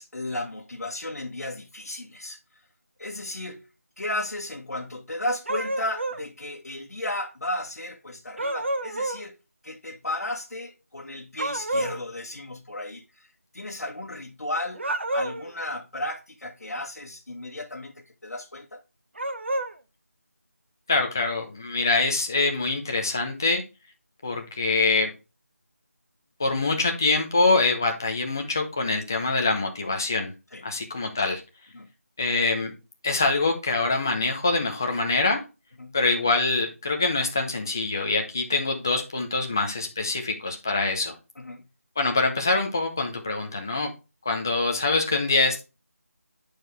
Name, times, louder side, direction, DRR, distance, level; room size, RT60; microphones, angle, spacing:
voice 1, 0.0-2.4 3.0-3.6 4.0-9.4 9.6-13.3 13.5-14.8 15.1-18.8 30.5-30.6 31.7-31.9 35.8-36.0 41.4-41.6, left 1 dB, 75° left, 1.3 m, -34 dB
sound 1, 5.5-6.3 8.4-9.2 11.4-12.0 14.7-15.5 19.2-19.7, right 1 dB, 50° right, 0.7 m, -29 dB
voice 2, 20.9-23.6 24.2-25.1 26.4-30.3 30.6-31.4 32.2-32.7 33.0-35.4 35.9-41.1 42.0-43.9 44.2-45.6, left 3 dB, 15° left, 0.6 m, -24 dB
10.0 x 4.6 x 3.2 m
figure-of-eight pair, 175°, 8 cm